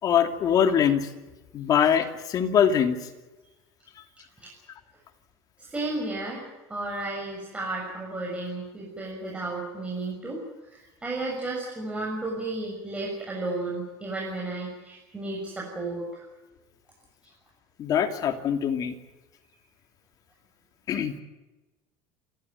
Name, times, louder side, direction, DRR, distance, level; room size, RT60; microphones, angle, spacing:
voice 1, 0.0-1.1 1.5-3.0 17.8-18.9 20.9-21.2, left 8 dB, 45° left, 6 dB, 2.7 m, -23 dB
voice 2, 5.6-6.4 6.7-10.4 10.7-16.3, right 2 dB, 15° right, -3 dB, 6.8 m, -33 dB
29.5 x 14.5 x 9.4 m, 1.1 s
cardioid pair, 130°, 9 cm